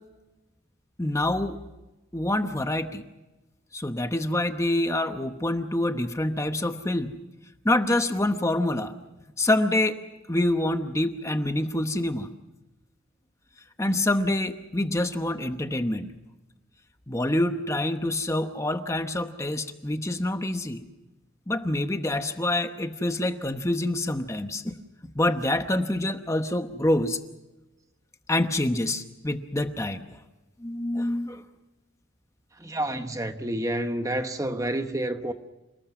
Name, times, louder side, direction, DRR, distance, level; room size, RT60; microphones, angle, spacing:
voice 1, 1.0-1.6 2.1-3.0 3.7-7.1 7.6-8.9 9.4-10.0 10.3-12.3 13.8-16.1 17.1-20.8 21.5-24.8 25.1-27.2 28.3-30.2 30.6-31.4, left 1 dB, 15° left, 0.9 m, -26 dB
voice 2, 32.6-35.3, right 1 dB, 15° right, 1.0 m, -29 dB
28.0 x 19.5 x 6.1 m
head